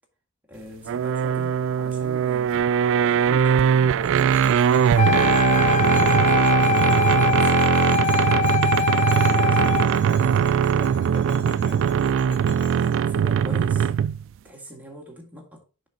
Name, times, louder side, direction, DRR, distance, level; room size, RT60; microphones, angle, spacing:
voice 1, 0.5-2.6 3.0-4.6 5.4-8.6 8.9-11.9 12.7-13.9 14.4-15.6, equal, 10° right, 1.8 m, -42 dB
sound 1, 0.9-14.2, right 8 dB, 60° right, 0.3 m, -20 dB
Bell, 4.0-13.0, left 2 dB, 85° left, 4.6 m, -44 dB
Wind instrument woodwind instrument, 5.0-10.0, left 6 dB, 35° left, 0.3 m, -22 dB
7.3 x 5.9 x 3.9 m
head